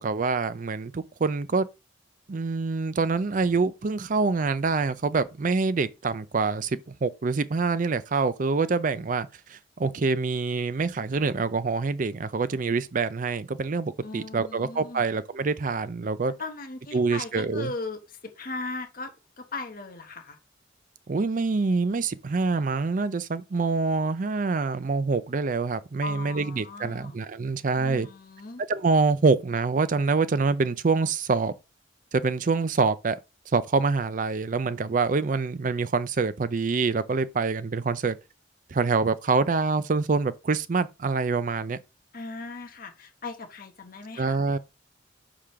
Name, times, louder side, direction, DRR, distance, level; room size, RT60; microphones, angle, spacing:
voice 1, 0.0-1.7 2.3-16.3 16.9-17.7 21.1-28.1 28.7-31.5 32.1-33.2 33.5-38.2 38.7-41.8 44.2-44.6, right 4 dB, 45° right, 0.4 m, -26 dB
voice 2, 14.0-15.0 16.4-20.4 26.0-27.2 27.8-28.6 42.1-44.4, left 3 dB, 45° left, 1.2 m, -38 dB
4.9 x 3.6 x 5.7 m
head